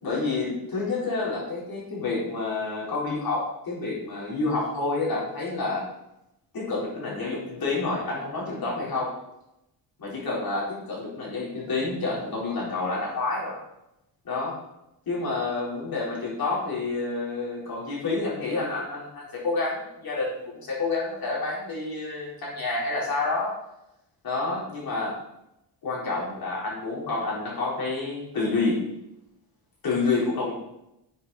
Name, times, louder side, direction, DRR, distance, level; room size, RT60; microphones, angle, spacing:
voice 1, 0.0-5.9 6.5-9.2 10.0-13.6 14.2-14.6 15.1-23.5 24.2-25.2 25.8-28.9 29.8-30.5, left 3 dB, 50° left, -5 dB, 4.4 m, -29 dB
11.5 x 7.6 x 4.2 m, 0.87 s
wide cardioid pair, 150°, 44 cm